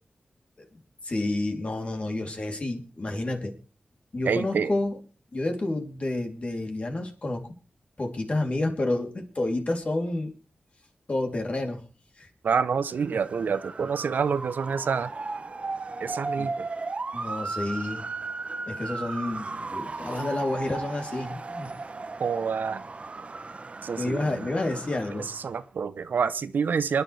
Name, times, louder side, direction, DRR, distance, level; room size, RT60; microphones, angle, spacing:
voice 1, 1.0-3.6 4.1-5.0 5.3-7.5 8.0-10.3 11.1-11.8 12.2-12.3 16.4-16.5 17.1-18.0 18.6-21.7 24.0-25.3, left 2 dB, 45° left, 3.0 m, -29 dB
voice 2, 4.2-4.7 12.4-15.1 16.0-16.7 22.2-22.8 23.8-24.5 25.2-27.0, right 6 dB, 90° right, 0.7 m, -27 dB
Motor vehicle (road) / Siren, 12.9-25.6, right 3 dB, 45° right, 1.0 m, -36 dB
27.5 x 10.5 x 3.3 m
wide cardioid pair, 105°, 3 cm